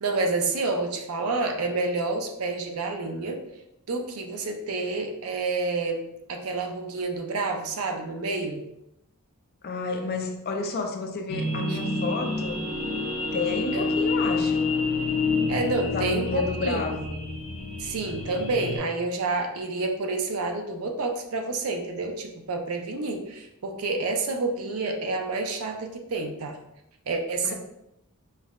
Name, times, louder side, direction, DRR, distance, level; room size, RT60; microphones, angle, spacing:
voice 1, 0.0-3.4 3.9-6.0 6.3-8.6 11.7-11.8 13.7-13.9 15.5-17.0 17.8-26.6 27.1-27.5, right 3 dB, 70° right, 0.5 m, -29 dB
voice 2, 9.6-12.7 13.3-14.7 15.9-17.2 27.4-27.5, left 4 dB, 45° left, 0.4 m, -31 dB
sound 1, 11.3-18.8, left 3 dB, 75° left, 0.8 m, -28 dB
5.3 x 2.0 x 2.4 m
head